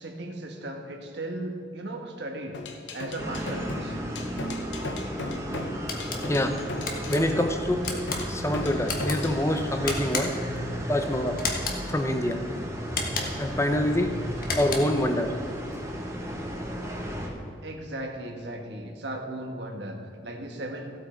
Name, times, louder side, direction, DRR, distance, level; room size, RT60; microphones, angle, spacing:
voice 1, 0.0-2.6 2.9-4.0 8.3-8.6 10.4-10.6 11.9-12.0 17.6-20.9, right 1 dB, 70° right, 3 dB, 1.4 m, -37 dB
sound 1, 2.5-9.4, left 2 dB, 80° left, 1.0 m, -37 dB
sound 2, 3.2-17.3, equal, 15° right, 1.6 m, -34 dB
sound 3, 5.9-6.2 6.9-7.2 7.8-8.2 8.8-9.2 9.9-10.5 11.4-11.8 12.9-13.5 14.4-15.0, left 4 dB, 50° left, 1.5 m, -32 dB
voice 2, 6.3-6.6 7.1-7.9 8.3-10.4 10.9-11.4 11.9-12.4 13.4-14.1 14.5-15.4, left 1 dB, 15° left, 6 dB, 0.8 m, -26 dB
16.0 x 8.2 x 4.5 m, 2.2 s
head